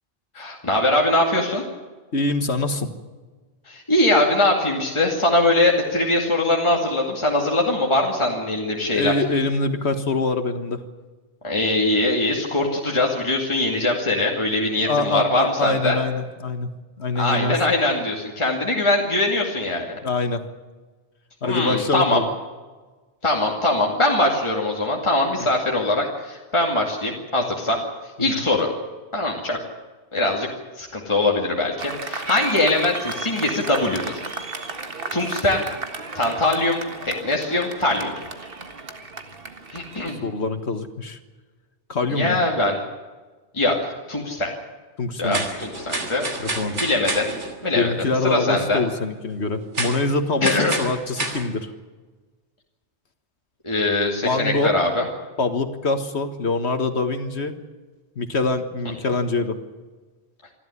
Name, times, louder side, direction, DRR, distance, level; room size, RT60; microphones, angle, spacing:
voice 1, 0.3-1.6 3.7-9.1 11.4-16.0 17.2-20.0 21.4-22.2 23.2-27.8 28.2-28.7 29.1-29.6 30.1-30.5 30.8-34.1 35.1-35.6 36.1-38.1 39.7-40.2 42.1-42.8 43.5-43.8 44.1-44.5 45.2-46.3 46.8-47.3 47.6-47.9 48.2-48.8 50.4-50.7 53.6-55.1, left 2 dB, 25° left, -1 dB, 2.5 m, -22 dB
voice 2, 2.1-2.9 8.9-10.8 14.8-16.7 17.0-17.6 20.0-20.4 21.4-22.3 28.2-28.3 40.2-41.2 41.9-42.4 45.0-45.4 46.4-46.8 47.7-51.7 54.2-54.7 55.4-57.6 58.2-59.6, left 3 dB, 70° left, 8 dB, 1.9 m, -24 dB
Applause, 31.8-40.2, right 3 dB, 55° right, 1.9 m, -33 dB
sound 1, 45.3-47.6 49.7-50.0 50.4-51.4, right 2 dB, 90° right, 3.2 m, -28 dB
27.5 x 12.5 x 9.8 m, 1.3 s
omnidirectional pair, 1.2 m